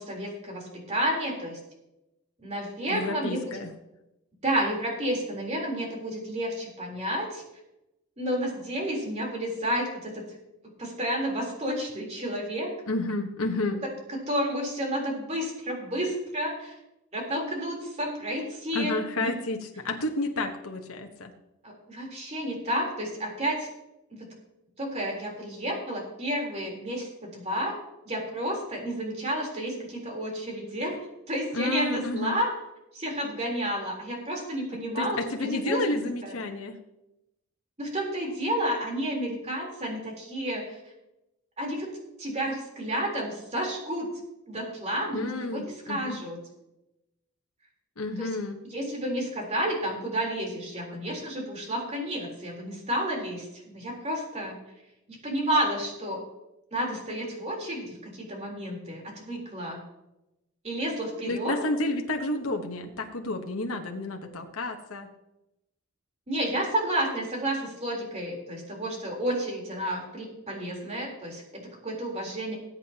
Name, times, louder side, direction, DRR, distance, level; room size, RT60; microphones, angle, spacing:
voice 1, 0.0-1.6 2.4-3.4 4.4-7.4 8.2-10.2 10.8-12.7 13.8-13.9 14.3-16.8 17.1-19.3 21.6-23.7 24.1-24.3 24.8-27.8 28.1-31.0 31.3-32.5 32.9-36.3 37.8-40.8 41.6-41.9 42.2-44.1 44.5-46.4 48.2-48.3 48.6-54.6 55.2-56.3 56.7-59.8 60.6-61.6 66.3-72.6, equal, 30° right, -1 dB, 3.7 m, -31 dB
voice 2, 2.9-3.7 12.9-13.8 18.7-21.3 31.5-32.3 35.0-36.8 45.1-46.2 48.0-48.6 61.3-65.1, left 2 dB, 75° left, 3 dB, 1.1 m, -30 dB
20.0 x 8.5 x 2.9 m, 0.90 s
head